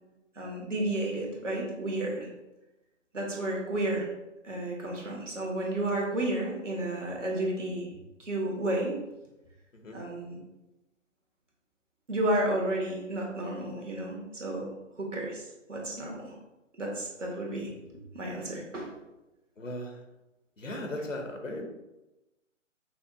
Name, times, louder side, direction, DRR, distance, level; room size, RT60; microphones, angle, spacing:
voice 1, 0.4-2.3 3.1-4.1 4.4-7.9 8.2-9.0 9.9-10.3 12.1-14.7 15.0-16.3 16.8-17.7 18.1-18.9, right 1 dB, 70° right, -1 dB, 1.5 m, -32 dB
voice 2, 19.6-20.0 20.6-21.7, left 1 dB, 85° left, 3 dB, 1.0 m, -37 dB
5.8 x 2.3 x 3.7 m, 1.0 s
figure-of-eight pair, 140°, 38 cm